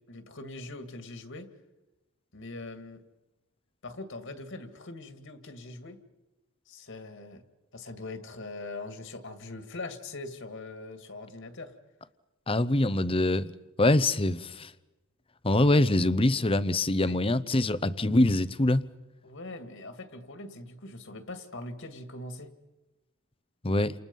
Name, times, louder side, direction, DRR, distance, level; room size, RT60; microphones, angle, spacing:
voice 1, 0.1-1.5 2.3-3.0 3.8-6.0 6.7-7.4 7.7-11.7 17.0-17.2 19.2-22.5, left 2 dB, 55° left, 2.2 m, -42 dB
voice 2, 12.5-13.5 13.8-14.7 15.4-18.9 23.6-23.9, left 1 dB, 25° left, 0.8 m, -24 dB
30.0 x 28.0 x 5.5 m
head